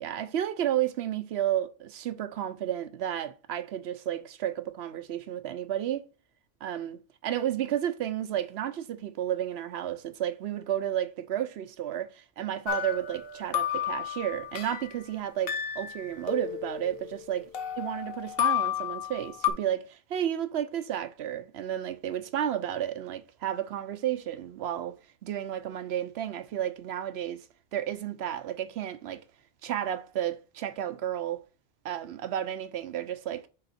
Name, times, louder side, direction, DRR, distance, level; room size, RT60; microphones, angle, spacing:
voice 1, 0.0-6.0 6.6-17.5 17.8-27.5 27.7-29.2 29.6-31.4 31.8-33.5, right 11 dB, 75° right, 0.9 m, -32 dB
sound 1, 12.7-14.9 15.5-17.2 17.5-19.5, left 10 dB, 60° left, 1.0 m, -32 dB
6.6 x 4.0 x 4.2 m
omnidirectional pair, 1.1 m